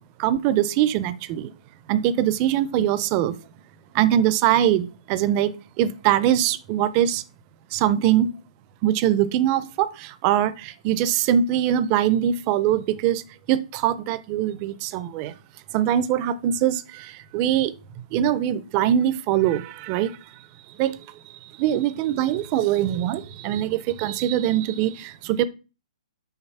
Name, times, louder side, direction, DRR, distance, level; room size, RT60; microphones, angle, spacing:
voice 1, 0.2-1.5 1.9-3.3 3.9-7.2 7.7-8.3 8.8-9.9 10.2-13.2 13.5-15.3 15.7-16.8 17.3-17.7 18.1-20.1 20.8-20.9 21.6-25.4, right 11 dB, 25° right, 0.4 m, -22 dB
5.7 x 3.8 x 5.4 m
hypercardioid pair, 165°, 4 cm